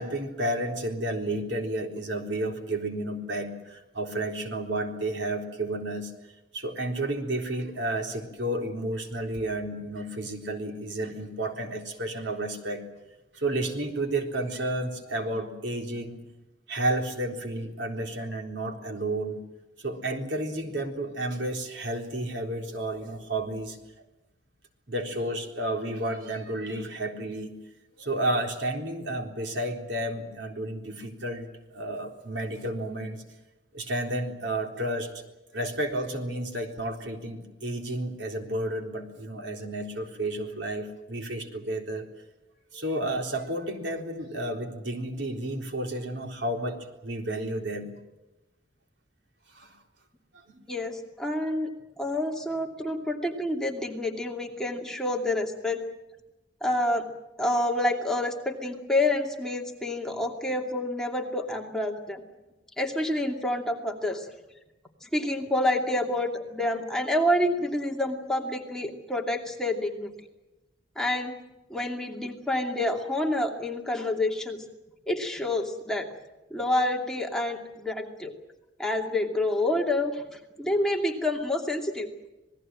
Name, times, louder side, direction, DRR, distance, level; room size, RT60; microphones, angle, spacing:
voice 1, 0.0-6.1 6.5-12.8 13.3-16.2 16.7-19.4 19.8-23.8 24.9-27.5 28.0-33.2 33.7-35.2 35.5-42.1 42.7-47.9 49.5-49.8 50.3-50.7, right 1 dB, 80° right, 3 dB, 3.9 m, -31 dB
voice 2, 50.7-51.7 52.0-55.8 56.6-57.1 57.4-62.2 62.8-64.3 65.0-70.1 71.0-71.3 71.7-74.6 75.1-76.1 76.5-78.3 78.8-82.1, left 1 dB, 5° left, 0 dB, 2.6 m, -28 dB
27.0 x 20.0 x 7.7 m, 1.0 s
head